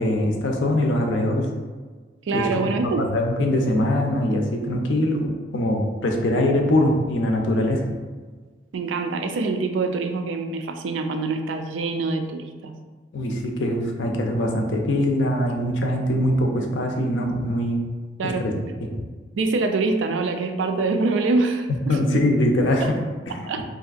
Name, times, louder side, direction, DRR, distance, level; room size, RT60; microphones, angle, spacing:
voice 1, 0.0-1.5 2.3-7.9 13.1-17.8 18.2-18.5 18.9-19.0 21.7-23.0 23.3-23.4, left 1 dB, 75° left, 2 dB, 0.5 m, -22 dB
voice 2, 2.3-3.0 8.7-12.7 18.2-18.5 19.3-22.0 22.8-22.9 23.5-23.6, right 3 dB, 80° right, 6 dB, 0.3 m, -25 dB
3.4 x 2.6 x 2.4 m, 1.4 s
head